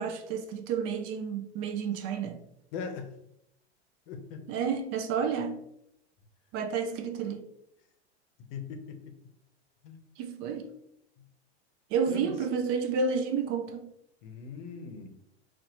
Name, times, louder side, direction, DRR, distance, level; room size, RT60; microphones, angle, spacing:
voice 1, 0.0-2.4 4.5-5.6 6.5-7.4 10.2-10.7 11.9-13.9, right 6 dB, 40° right, 0.4 m, -30 dB
voice 2, 2.7-3.1 4.1-4.4 8.5-9.1 9.8-10.0 12.1-12.3 14.2-15.1, left 5 dB, 60° left, 0.7 m, -40 dB
4.1 x 2.1 x 2.9 m
hypercardioid pair, 110°, 33 cm